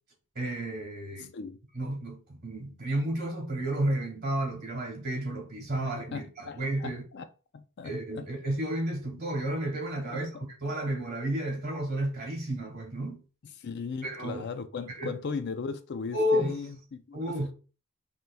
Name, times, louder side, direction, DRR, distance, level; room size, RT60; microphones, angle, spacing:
voice 1, 0.4-1.3 1.7-7.0 7.8-10.3 10.6-13.2 14.0-14.4 15.0-15.1 16.1-16.5 17.1-17.5, right 1 dB, 45° right, 1.8 m, -31 dB
voice 2, 1.2-1.6 6.1-7.3 7.5-8.3 10.0-10.5 13.4-17.5, left 5 dB, 55° left, 0.4 m, -38 dB
5.3 x 3.0 x 2.2 m
head